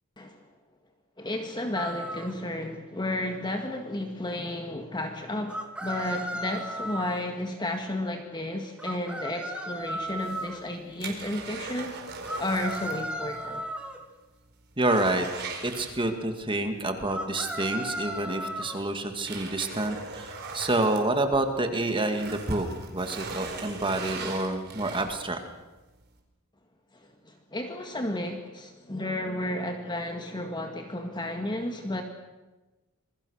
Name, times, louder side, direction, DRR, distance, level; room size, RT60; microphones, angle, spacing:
voice 1, 1.2-12.0 12.4-13.6 26.9-32.0, left 1 dB, 20° left, 4 dB, 1.9 m, -32 dB
sound 1, 1.7-2.3 5.5-7.2 8.8-10.6 12.2-14.0 17.1-18.8, right 1 dB, 5° right, 2.6 m, -35 dB
sound 2, 10.1-13.1 13.3-13.4 13.9-14.0 14.4-16.4 17.8-17.9 18.6-21.7 22.0-25.4 25.9-26.0, right 4 dB, 50° right, 4.8 m, -40 dB
voice 2, 14.8-15.3 15.6-22.7 22.9-25.4, right 2 dB, 25° right, 6 dB, 2.2 m, -28 dB
27.5 x 22.5 x 6.5 m, 1.1 s
head